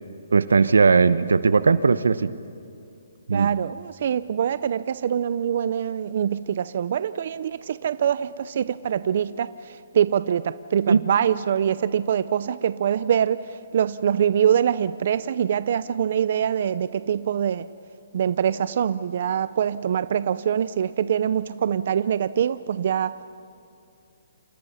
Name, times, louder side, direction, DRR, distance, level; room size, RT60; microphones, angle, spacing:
voice 1, 0.3-2.3 3.3-3.5 10.9-11.0, right 5 dB, 90° right, 14 dB, 1.0 m, -18 dB
voice 2, 3.3-17.7 18.1-23.2, right 8 dB, 55° right, 15 dB, 0.6 m, -24 dB
28.5 x 28.5 x 5.8 m, 2.5 s
hypercardioid pair, 155°, 0 cm